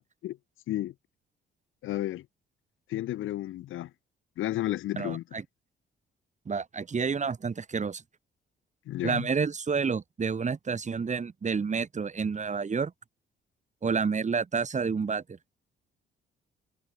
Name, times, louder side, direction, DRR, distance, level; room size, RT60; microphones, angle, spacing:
voice 1, 1.8-2.3 2.9-3.9 4.4-5.4 8.9-9.3, left 14 dB, 85° left, 4.2 m, -32 dB
voice 2, 5.0-5.4 6.5-8.0 9.0-12.9 13.8-15.4, right 5 dB, 35° right, 4.8 m, -29 dB
cardioid pair, 90°, 20 cm